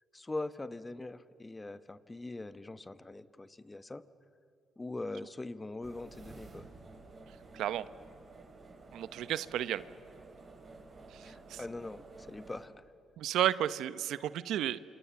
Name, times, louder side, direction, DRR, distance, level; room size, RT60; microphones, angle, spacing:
voice 1, 0.1-4.0 4.8-6.7 11.2-12.7, left 2 dB, 20° left, 14 dB, 1.0 m, -42 dB
sound 1, 5.8-12.7, right 3 dB, 40° right, 5.1 m, -52 dB
voice 2, 7.5-7.8 8.9-9.8 11.5-11.6 13.2-14.8, right 12 dB, 80° right, 16 dB, 0.8 m, -32 dB
28.5 x 27.5 x 7.1 m, 2.7 s
cardioid pair, 90°, 0 cm